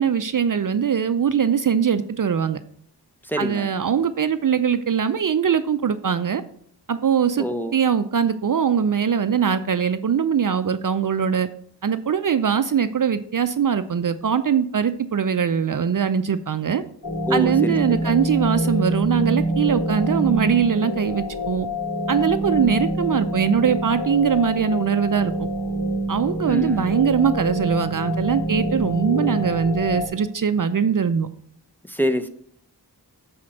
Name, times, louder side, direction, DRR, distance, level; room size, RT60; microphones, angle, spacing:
voice 1, 0.0-2.6 3.4-6.4 6.9-7.4 7.7-11.5 11.8-16.8 17.3-21.7 22.1-25.5 26.1-31.3, right 7 dB, 50° right, 11 dB, 0.5 m, -21 dB
voice 2, 3.2-3.7 7.4-7.7 17.3-18.1 26.4-26.9 31.8-32.3, equal, 5° left, 6 dB, 0.7 m, -26 dB
sound 1, 17.0-30.1, right 1 dB, 45° left, 2.9 m, -26 dB
7.4 x 4.3 x 6.3 m, 0.62 s
cardioid pair, 45°, 42 cm